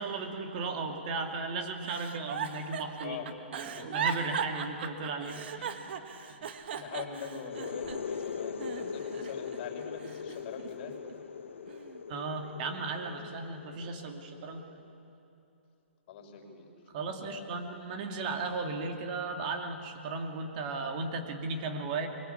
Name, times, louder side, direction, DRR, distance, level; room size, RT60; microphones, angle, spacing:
voice 1, 0.0-3.2 3.5-5.3 12.1-14.7 16.9-22.1, right 3 dB, 40° right, 4 dB, 2.6 m, -35 dB
Giggle, 1.8-8.2 8.6-9.6 10.0-11.1 11.7-12.0, right 7 dB, 55° right, 1.5 m, -38 dB
voice 2, 3.0-3.4 3.7-4.0 5.2-5.7 6.2-6.5 6.7-11.0 12.6-12.7 13.0-13.2 13.5-13.6 16.1-16.7 17.0-17.5, left 6 dB, 40° left, 3 dB, 5.9 m, -43 dB
sound 1, 7.4-14.9, left 6 dB, 75° left, 1.0 m, -41 dB
23.5 x 22.0 x 8.6 m, 2.9 s
hypercardioid pair, 145°, 7 cm